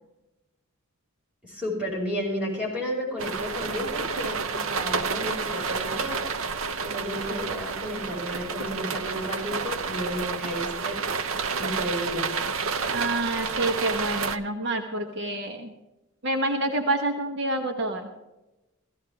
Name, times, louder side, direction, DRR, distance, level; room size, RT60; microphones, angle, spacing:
voice 1, 1.4-6.2 6.8-11.0 11.6-12.3, equal, 5° right, -4 dB, 5.6 m, -32 dB
sound 1, 3.2-14.4, right 5 dB, 75° right, 0.7 m, -30 dB
voice 2, 12.9-15.7 16.2-18.1, right 2 dB, 60° right, 4 dB, 1.2 m, -28 dB
16.0 x 15.0 x 3.5 m, 1.0 s
head